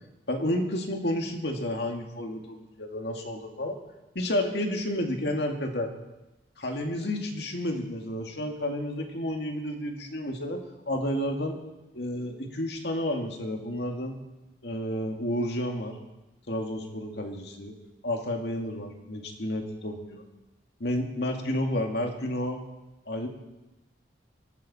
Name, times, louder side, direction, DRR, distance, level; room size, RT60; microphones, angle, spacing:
voice 1, 0.3-3.8 4.1-5.9 6.6-10.6 10.9-11.6 11.9-14.2 14.6-16.0 16.5-17.8 18.0-20.2 20.8-22.6 23.1-23.3, left 1 dB, 65° left, 3 dB, 2.2 m, -31 dB
21.0 x 13.0 x 4.3 m, 1.0 s
head